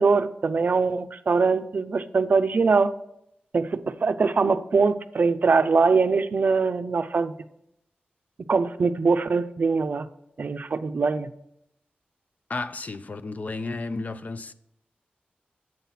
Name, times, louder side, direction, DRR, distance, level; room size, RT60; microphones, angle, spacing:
voice 1, 0.0-2.9 3.5-7.3 8.5-10.1 10.4-11.3, right 4 dB, 55° right, 0.5 m, -22 dB
voice 2, 12.5-14.5, left 3 dB, 50° left, 0.4 m, -32 dB
7.9 x 5.7 x 5.7 m
wide cardioid pair, 105°, 3 cm